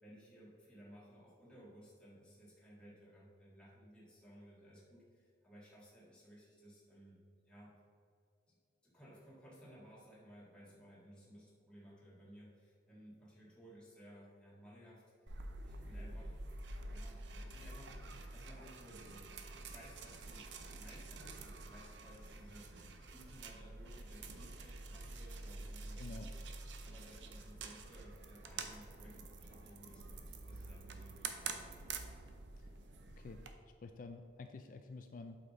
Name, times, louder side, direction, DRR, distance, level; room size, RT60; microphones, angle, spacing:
voice 1, 0.0-7.2 7.5-7.7 8.5-8.6 8.8-15.3 15.7-16.4 16.9-18.0 18.3-20.5 20.7-26.6 26.8-31.6, equal, 5° left, -7 dB, 1.8 m, -58 dB
sound 1, 15.3-33.5, right 3 dB, 75° right, 0.7 m, -48 dB
voice 2, 26.0-26.3 32.6-32.7 33.2-33.5 33.8-35.4, left 3 dB, 45° left, 7 dB, 0.4 m, -50 dB
8.2 x 5.7 x 4.1 m, 2.4 s
head